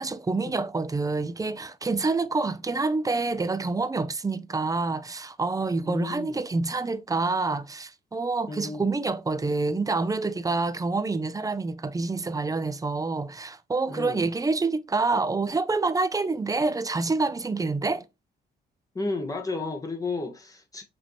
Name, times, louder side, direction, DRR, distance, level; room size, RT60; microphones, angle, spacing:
voice 1, 0.0-18.0, right 3 dB, 20° right, 0.5 m, -27 dB
voice 2, 5.8-6.4 8.5-8.9 13.9-14.3 18.9-20.8, left 3 dB, 20° left, 1.1 m, -33 dB
6.0 x 2.8 x 3.1 m
cardioid pair, 105°, 19 cm